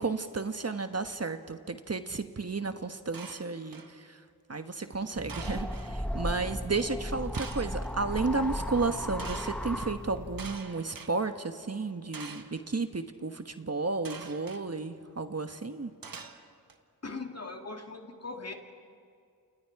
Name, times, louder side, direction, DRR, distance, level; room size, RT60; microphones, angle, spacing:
voice 1, 0.0-4.2 4.5-15.9, right 3 dB, 40° right, 8 dB, 1.3 m, -33 dB
sound 1, 3.1-4.0 5.3-5.9 7.3-7.9 9.2-9.6 10.4-11.1 12.1-12.6 14.0-14.6 16.0-16.7, right 5 dB, 65° right, 1.5 m, -44 dB
sound 2, 5.2-10.6, equal, 5° left, 1.3 m, -36 dB
voice 2, 17.0-18.5, left 3 dB, 40° left, 4 dB, 2.5 m, -40 dB
29.0 x 28.0 x 4.8 m, 2.3 s
cardioid pair, 50°, 37 cm